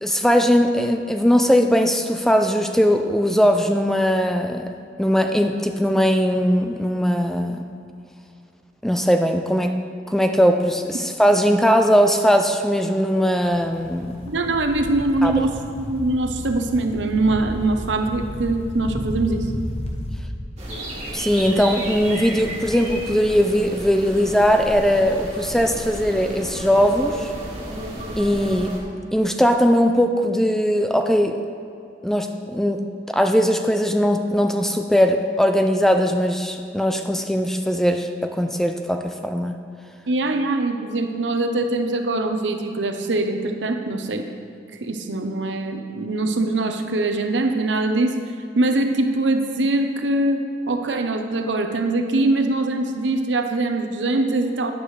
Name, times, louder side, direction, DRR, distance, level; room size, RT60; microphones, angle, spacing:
voice 1, 0.0-4.7 5.0-7.7 8.8-9.7 10.1-14.2 15.2-15.3 21.1-27.3 28.2-28.7 29.1-31.3 32.0-32.8 33.1-39.6, equal, ahead, 5 dB, 0.3 m, -19 dB
sound 1, 13.5-20.2, equal, 35° left, 1.2 m, -32 dB
voice 2, 14.3-19.5 40.1-44.3 44.8-48.2 48.6-54.7, right 2 dB, 90° right, 6 dB, 0.8 m, -22 dB
sound 2, 20.6-28.8, right 1 dB, 40° right, 2.0 m, -33 dB
12.0 x 9.8 x 3.3 m, 2.5 s
head